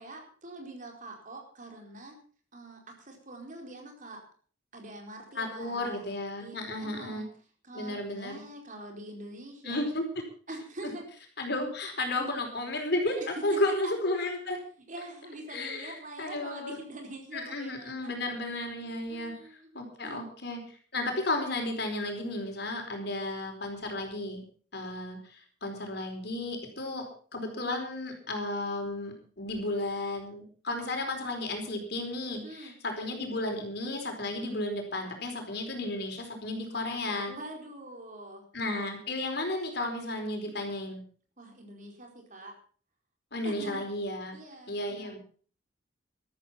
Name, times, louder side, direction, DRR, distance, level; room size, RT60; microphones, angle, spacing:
voice 1, 0.0-2.2 2.5-4.2 4.7-6.1 6.4-7.3 7.6-9.8 10.5-11.1 12.2-12.3 13.1-13.9 14.9-18.1 18.8-19.7 20.0-20.2 23.2-23.4 32.4-32.7 37.3-38.4 40.5-40.7 41.4-42.5 43.4-43.8 44.3-45.2, right 1 dB, 45° right, 2 dB, 4.4 m, -44 dB
voice 2, 5.3-7.2 7.7-8.4 9.6-10.0 10.8-10.9 11.4-14.6 15.5-16.8 17.3-19.3 19.7-20.6 20.9-24.4 24.7-27.0 27.3-37.3 38.5-41.0 43.3-44.4 44.7-45.2, left 2 dB, 60° left, 3 dB, 4.6 m, -33 dB
14.0 x 13.0 x 5.8 m, 0.43 s
head